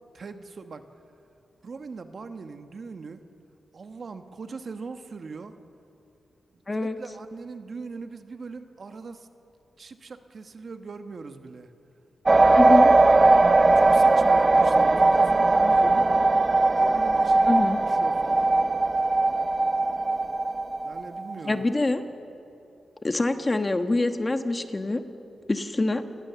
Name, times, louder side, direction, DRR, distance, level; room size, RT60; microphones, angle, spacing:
voice 1, 0.1-0.8 1.6-3.2 3.7-5.6 6.8-9.3 9.8-11.7 13.7-16.3 16.7-18.6 20.8-21.6, right 4 dB, 55° right, 8 dB, 1.3 m, -40 dB
sound 1, 12.3-21.3, right 2 dB, 30° right, 0.5 m, -19 dB
voice 2, 12.5-12.9 17.5-17.8 21.5-22.0 23.0-25.0 25.5-26.0, left 2 dB, 25° left, 8 dB, 1.4 m, -25 dB
29.0 x 19.0 x 7.0 m, 2.8 s
cardioid pair, 80°, 0 cm